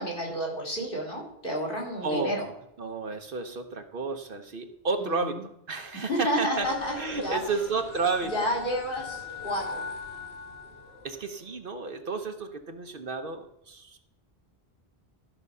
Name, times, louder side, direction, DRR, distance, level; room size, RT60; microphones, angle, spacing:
voice 1, 0.0-2.5 5.0-5.3 5.9-7.4 8.3-9.8, equal, 55° left, -2 dB, 3.2 m, -31 dB
voice 2, 2.0-2.5 2.8-6.7 7.0-8.5 11.0-14.1, right 4 dB, 55° right, 7 dB, 1.0 m, -32 dB
sound 1, 6.5-11.4, left 3 dB, 70° left, 2.0 m, -40 dB
13.0 x 6.0 x 5.5 m, 0.79 s
omnidirectional pair, 1.1 m